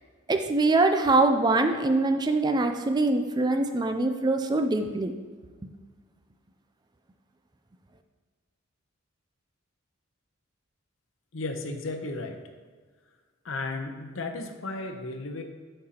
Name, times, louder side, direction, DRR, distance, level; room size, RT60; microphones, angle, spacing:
voice 1, 0.3-5.1, right 2 dB, 20° right, 6 dB, 0.4 m, -23 dB
voice 2, 11.3-12.4 13.4-15.4, left 2 dB, 65° left, 5 dB, 0.8 m, -34 dB
8.7 x 6.6 x 2.9 m, 1.5 s
head